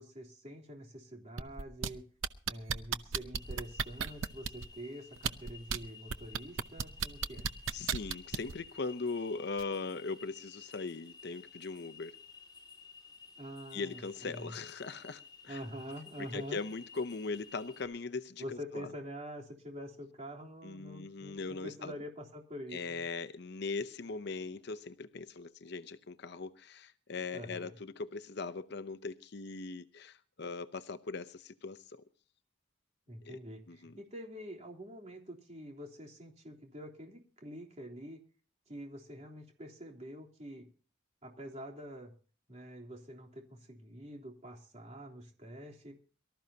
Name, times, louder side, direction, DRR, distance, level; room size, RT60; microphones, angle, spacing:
voice 1, 0.0-2.0 2.5-7.5 13.4-14.5 15.5-16.6 18.4-23.1 27.3-27.8 33.1-38.2 38.7-40.7 41.2-42.1 42.5-45.9, equal, 35° right, 3.4 m, -46 dB
sound 1, 1.4-1.9 2.2-4.7 5.2-5.8 6.1-8.5 9.6-9.7, right 7 dB, 85° right, 0.8 m, -34 dB
sound 2, 3.3-17.9, left 5 dB, 20° left, 5.1 m, -54 dB
voice 2, 7.7-12.2 13.7-15.6 16.2-18.4 18.7-18.9 20.6-21.9 22.7-32.0 33.2-33.4 33.7-33.9, left 4 dB, 55° left, 0.7 m, -40 dB
23.5 x 13.5 x 2.8 m
head